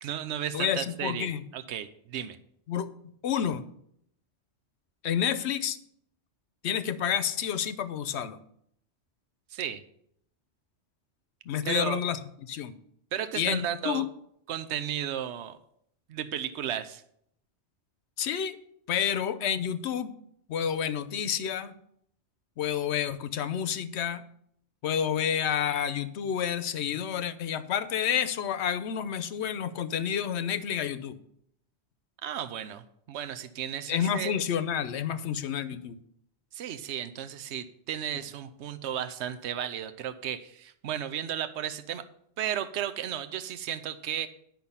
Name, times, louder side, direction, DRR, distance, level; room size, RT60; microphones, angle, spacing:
voice 1, 0.0-2.4 9.5-9.8 11.6-12.0 13.1-14.0 14.5-15.6 16.1-17.0 32.2-34.4 36.5-42.1 42.4-44.3, right 10 dB, 80° right, 10 dB, 1.0 m, -34 dB
voice 2, 0.5-1.4 2.7-2.9 3.2-3.6 5.0-5.8 6.6-8.4 11.5-12.8 13.3-14.0 18.2-18.6 18.9-20.1 20.5-21.7 22.6-24.2 24.8-31.2 33.9-36.0, left 9 dB, 75° left, 12 dB, 1.0 m, -29 dB
10.5 x 6.1 x 5.5 m, 0.70 s
omnidirectional pair, 1.1 m